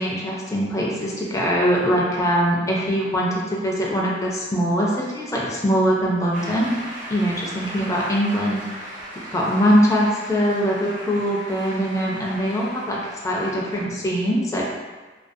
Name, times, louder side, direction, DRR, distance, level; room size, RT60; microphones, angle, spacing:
voice 1, 0.0-6.8 7.1-14.6, equal, 15° left, -4 dB, 0.3 m, -22 dB
Shout / Cheering / Applause, 6.3-13.8, right 1 dB, 45° right, 0.6 m, -38 dB
2.4 x 2.3 x 2.6 m, 1.3 s
head